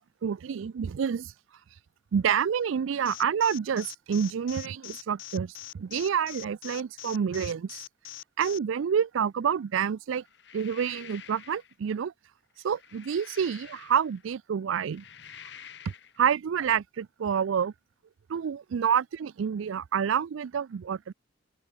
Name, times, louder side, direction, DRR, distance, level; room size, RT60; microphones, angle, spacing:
voice 1, 0.2-1.3 2.1-7.8 8.4-10.2 10.5-12.1 12.6-15.0 16.2-17.7 18.3-21.1, right 7 dB, 85° right, 0.4 m, -28 dB
Alarm, 3.1-8.6, left 13 dB, 90° left, 1.2 m, -42 dB
sound 1, 10.3-11.7 12.6-14.3 14.8-16.2, left 8 dB, 60° left, 1.3 m, -49 dB
open air
head